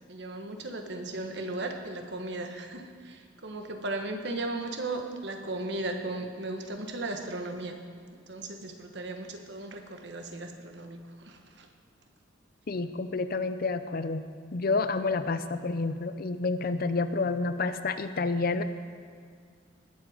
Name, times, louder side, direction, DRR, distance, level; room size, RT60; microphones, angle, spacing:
voice 1, 0.1-7.8 8.1-11.7, right 2 dB, 55° right, 5 dB, 1.2 m, -36 dB
voice 2, 12.7-14.3 14.5-18.6, left 3 dB, 45° left, 11 dB, 0.6 m, -29 dB
20.0 x 7.9 x 4.9 m, 2.2 s
head